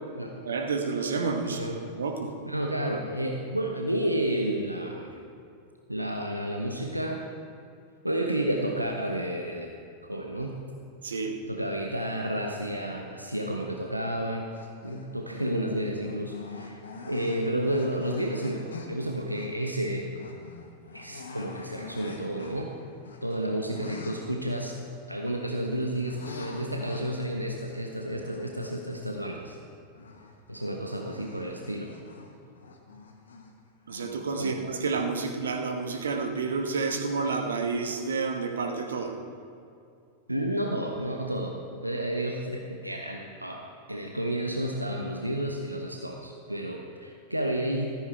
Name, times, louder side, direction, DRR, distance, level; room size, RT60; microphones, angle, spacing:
voice 1, 0.4-1.6 2.0-2.3 11.0-11.4 33.9-39.1, right 4 dB, 70° right, 5 dB, 1.3 m, -30 dB
voice 2, 1.4-1.8 2.5-5.2 5.9-7.2 8.0-9.7 10.0-10.6 11.5-14.5 14.8-16.8 17.1-20.1 20.9-22.7 23.2-24.8 25.1-29.6 30.5-31.9 34.4-34.6 40.3-47.9, right 1 dB, 85° right, 1 dB, 1.1 m, -31 dB
sound 1, 14.5-15.7 16.0-29.7 29.9-33.5 33.9-34.1, left 3 dB, 70° left, 1.4 m, -46 dB
14.5 x 14.0 x 4.4 m, 2.4 s
figure-of-eight pair, 90°, 0 cm